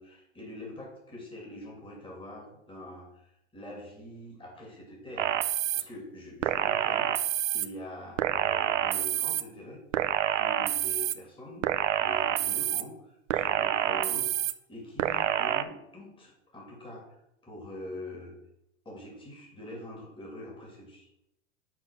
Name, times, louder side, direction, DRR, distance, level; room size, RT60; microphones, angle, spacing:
voice 1, 0.0-5.4 5.7-7.2 7.5-9.8 10.3-11.7 12.0-17.1 17.4-18.3 18.8-21.1, left 1 dB, 15° left, -2 dB, 2.7 m, -44 dB
sound 1, 5.2-5.8 6.4-7.7 8.2-9.4 9.9-11.1 11.6-12.8 13.3-14.5 15.0-15.6, right 11 dB, 80° right, 0.6 m, -27 dB
6.0 x 4.5 x 6.3 m, 0.82 s
hypercardioid pair, 100°, 36 cm